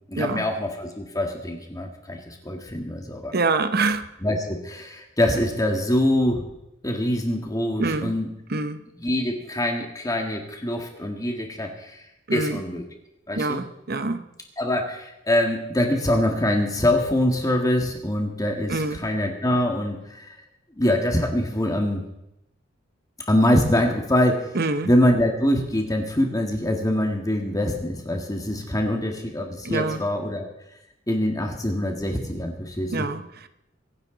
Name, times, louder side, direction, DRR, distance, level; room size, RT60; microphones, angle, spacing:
voice 1, 0.1-3.3 4.2-6.4 6.8-8.3 9.0-12.1 12.3-12.8 13.3-13.6 14.6-20.4 20.8-22.0 23.3-24.5 24.8-30.5 31.1-33.1, left 1 dB, 20° left, 2 dB, 2.0 m, -24 dB
voice 2, 3.3-4.1 7.8-8.1 8.5-8.8 12.3-12.6 13.3-14.3 18.7-19.0 24.5-24.9 29.6-30.0 32.9-33.5, right 3 dB, 55° right, 11 dB, 0.9 m, -25 dB
23.5 x 11.0 x 4.0 m, 0.85 s
head